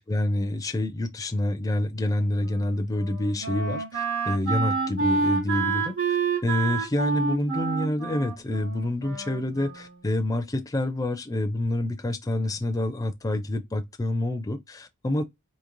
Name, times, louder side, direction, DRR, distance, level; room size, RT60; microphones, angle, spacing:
voice 1, 0.0-6.2 6.4-15.3, left 1 dB, 15° left, 0.4 m, -27 dB
Wind instrument woodwind instrument, 2.4-10.2, right 4 dB, 85° right, 2.1 m, -29 dB
3.8 x 2.7 x 3.0 m
head